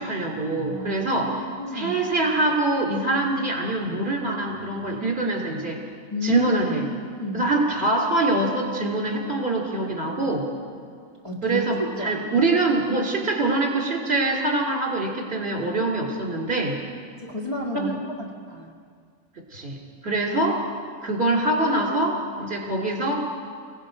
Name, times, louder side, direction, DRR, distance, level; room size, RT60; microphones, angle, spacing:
voice 1, 0.0-1.3 1.7-5.8 6.2-6.8 7.3-10.4 11.4-16.8 17.7-18.0 19.5-19.8 20.0-20.6 21.0-23.2, right 2 dB, 45° right, -1 dB, 3.3 m, -24 dB
voice 2, 0.7-1.1 1.4-2.1 6.1-6.5 7.2-7.5 10.2-10.4 10.7-11.6 12.0-12.4 17.2-18.0 18.5-18.7, left 1 dB, 20° left, -3 dB, 1.9 m, -32 dB
28.5 x 17.5 x 5.2 m, 2.1 s
omnidirectional pair, 1.5 m